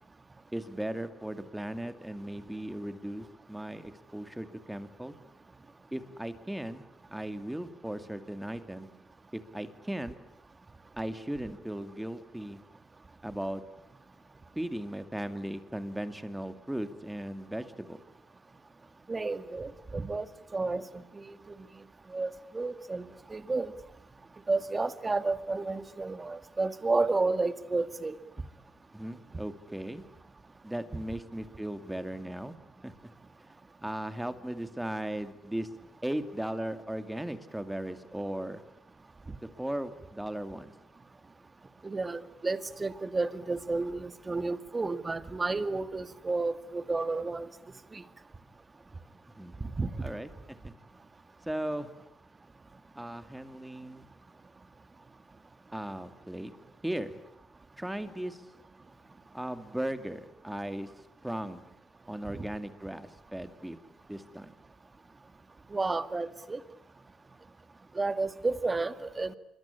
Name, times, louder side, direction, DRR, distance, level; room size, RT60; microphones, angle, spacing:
voice 1, 0.5-5.1 5.9-6.8 7.1-8.9 9.3-10.1 11.0-12.6 13.2-13.6 14.6-18.0 28.9-30.0 30.6-32.6 32.8-32.9 33.4-33.5 33.8-35.7 36.0-38.6 39.4-40.7 49.4-49.5 50.0-50.7 51.5-51.9 53.0-54.0 55.7-56.5 56.8-57.2 57.8-58.5 59.3-61.6 62.1-63.8 64.1-64.5, right 1 dB, 5° right, 10 dB, 2.4 m, -37 dB
voice 2, 19.1-20.3 20.5-21.6 22.1-23.7 24.5-28.1 41.8-47.5 47.9-48.0 49.8-49.9 62.3-62.5 65.7-66.6 68.0-69.3, right 3 dB, 25° right, 12 dB, 2.0 m, -31 dB
26.0 x 22.5 x 10.0 m, 0.80 s
cardioid pair, 90°, 0 cm